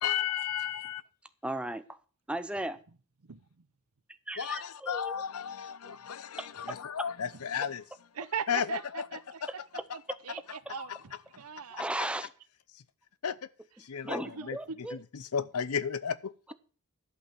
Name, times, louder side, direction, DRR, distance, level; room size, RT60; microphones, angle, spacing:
voice 1, 0.0-1.0 4.4-7.8 8.5-9.0 9.4-9.5 10.8-11.0 13.2-13.5 13.8-14.6 14.9-16.3, left 8 dB, 80° left, 0.6 m, -33 dB
voice 2, 1.4-2.0 2.3-2.8 4.3-5.2 5.9-6.0 6.4-6.7 11.7-12.3 14.0-15.0, right 1 dB, 5° right, 0.7 m, -36 dB
voice 3, 3.2-3.7 8.2-8.8 9.1-9.4 9.9-11.9 14.2-14.8, right 6 dB, 80° right, 0.8 m, -40 dB
11.5 x 5.6 x 7.5 m
head